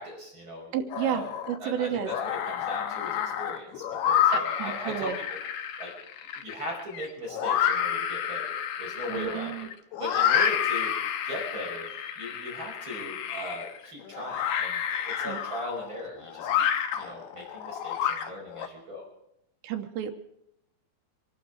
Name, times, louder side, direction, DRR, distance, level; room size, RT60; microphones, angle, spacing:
voice 1, 0.0-0.7 1.0-1.3 1.6-5.4 5.8-5.9 6.3-9.7 10.0-10.9 11.2-11.9 12.2-16.7 16.9-19.1, equal, 25° right, -3 dB, 5.9 m, -38 dB
voice 2, 0.7-2.1 4.3-5.2 9.1-9.7 15.3-15.4 19.6-20.1, right 9 dB, 80° right, 6 dB, 3.4 m, -31 dB
sound 1, 0.9-1.6 1.9-18.7, left 9 dB, 70° left, 3.0 m, -29 dB
25.0 x 12.0 x 4.8 m, 0.78 s
omnidirectional pair, 5.3 m